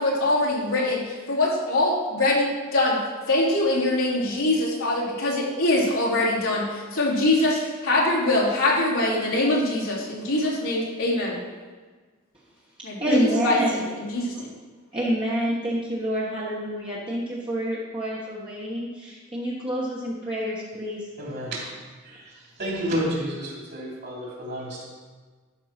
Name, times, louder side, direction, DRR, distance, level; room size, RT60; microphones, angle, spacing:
voice 1, 0.0-3.0 3.3-11.4 12.8-13.8 14.1-14.5, left 2 dB, 90° left, -6 dB, 3.0 m, -23 dB
voice 2, 12.8-13.8 14.9-21.1, equal, 25° right, -7 dB, 1.3 m, -27 dB
voice 3, 21.2-21.6 22.0-22.3 22.6-24.9, equal, 55° right, -4 dB, 3.3 m, -30 dB
12.0 x 4.5 x 5.9 m, 1.4 s
head